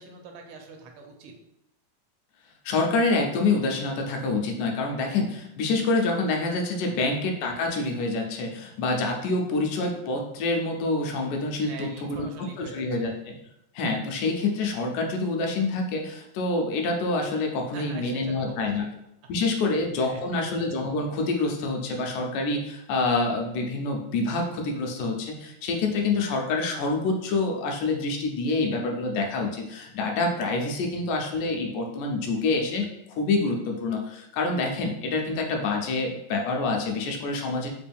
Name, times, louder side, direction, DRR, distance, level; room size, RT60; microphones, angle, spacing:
voice 1, 0.0-1.4 6.9-7.2 11.7-13.1 17.7-18.9 19.2-19.3 19.6-20.4 30.9-31.0, right 4 dB, 85° right, 3 dB, 2.1 m, -43 dB
voice 2, 2.7-12.3 12.6-13.4 13.8-18.9 19.3-37.7, left 3 dB, 80° left, 2 dB, 2.1 m, -27 dB
5.1 x 2.2 x 3.4 m, 0.82 s
omnidirectional pair, 3.6 m